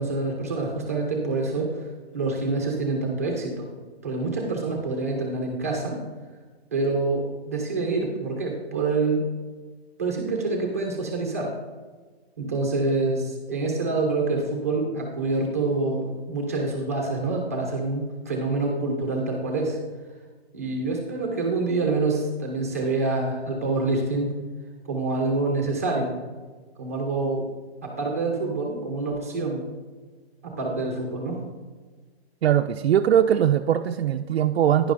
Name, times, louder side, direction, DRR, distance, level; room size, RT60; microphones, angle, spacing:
voice 1, 0.0-1.9 2.1-3.7 4.0-6.0 6.7-9.2 10.0-11.5 12.4-19.8 20.5-24.3 24.8-26.2 26.8-27.5 27.8-29.7 30.4-31.4, right 3 dB, 15° right, 1 dB, 0.6 m, -26 dB
voice 2, 32.4-34.9, right 10 dB, 75° right, 5 dB, 0.5 m, -21 dB
10.5 x 10.0 x 2.5 m, 1.4 s
hypercardioid pair, 180°, 32 cm